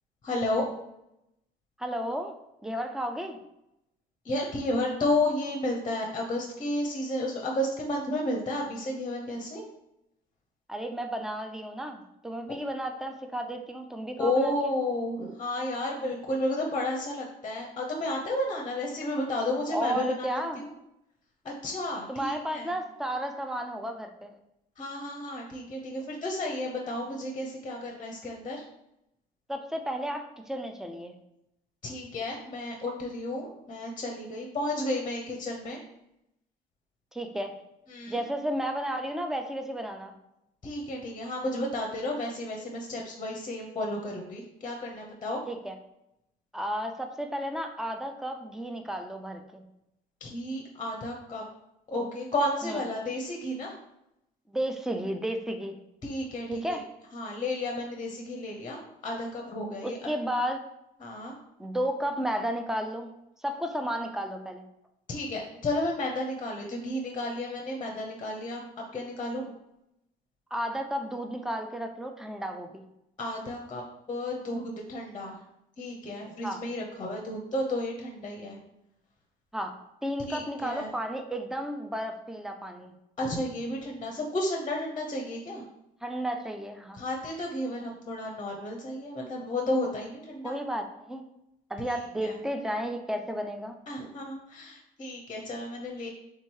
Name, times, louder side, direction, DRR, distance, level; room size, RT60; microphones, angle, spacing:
voice 1, 0.2-0.7 4.2-9.6 14.2-20.7 21.4-22.7 24.8-28.6 31.8-35.8 37.9-38.2 40.6-45.5 50.2-51.5 51.9-53.8 56.0-56.8 57.1-60.0 61.0-61.4 65.1-69.5 73.2-73.8 74.1-75.4 75.8-78.6 80.3-80.9 83.2-85.6 86.9-90.6 91.8-92.4 93.9-96.1, left 1 dB, 30° left, 0 dB, 0.7 m, -32 dB
voice 2, 1.8-2.3 2.6-3.4 10.7-14.7 19.7-20.6 22.1-24.3 29.5-31.2 37.1-37.5 38.1-40.1 45.5-45.7 46.5-49.6 52.6-52.8 54.5-55.8 56.5-56.8 59.8-60.6 61.6-63.1 63.4-64.6 70.5-72.9 76.4-76.6 79.5-79.7 80.0-82.9 86.0-87.0 90.4-91.2 91.7-93.8, equal, 5° right, 5 dB, 0.5 m, -33 dB
3.5 x 2.9 x 4.6 m, 0.86 s
cardioid pair, 110°, 17 cm